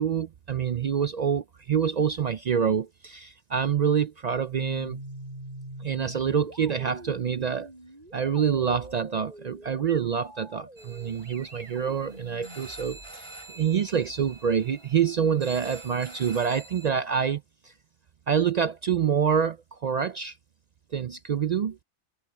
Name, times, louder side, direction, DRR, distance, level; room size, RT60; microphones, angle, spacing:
voice 1, 0.0-5.0 5.8-7.7 8.1-17.7 18.3-20.4 20.9-21.8, right 7 dB, 65° right, 0.4 m, -26 dB
sound 1, 4.5-13.1, right 1 dB, 40° right, 5.8 m, -43 dB
sound 2, 10.8-16.9, right 2 dB, 25° right, 3.2 m, -47 dB
omnidirectional pair, 1.2 m